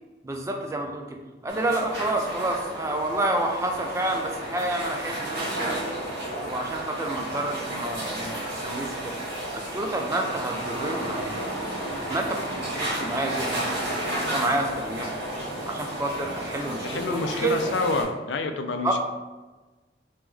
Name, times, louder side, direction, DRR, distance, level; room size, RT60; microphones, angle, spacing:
voice 1, 0.2-1.2 1.4-5.9 6.4-9.1 9.5-11.3 12.1-13.7 14.2-15.1 15.7-17.8 18.8-19.0, right 2 dB, 15° right, 2 dB, 0.3 m, -29 dB
sound 1, 1.5-18.0, right 1 dB, 75° right, 1.3 m, -32 dB
voice 2, 16.5-19.0, left 3 dB, 80° left, 7 dB, 0.4 m, -28 dB
3.5 x 2.9 x 3.3 m, 1.2 s
head